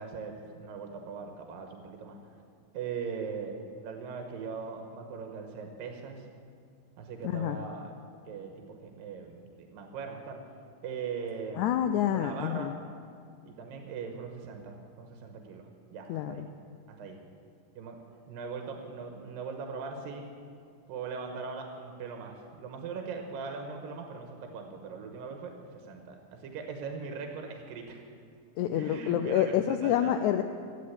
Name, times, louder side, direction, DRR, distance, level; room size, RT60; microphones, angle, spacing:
voice 1, 0.0-2.2 2.7-6.2 7.0-8.0 8.2-10.4 10.8-11.8 12.1-12.8 13.5-16.5 16.9-17.2 17.8-20.3 20.9-28.0 28.7-30.2, right 5 dB, 85° right, 3 dB, 2.8 m, -40 dB
voice 2, 11.6-12.7 16.1-16.5 28.6-30.4, left 10 dB, 90° left, 8 dB, 1.7 m, -28 dB
13.5 x 9.9 x 8.5 m, 2.4 s
omnidirectional pair, 4.0 m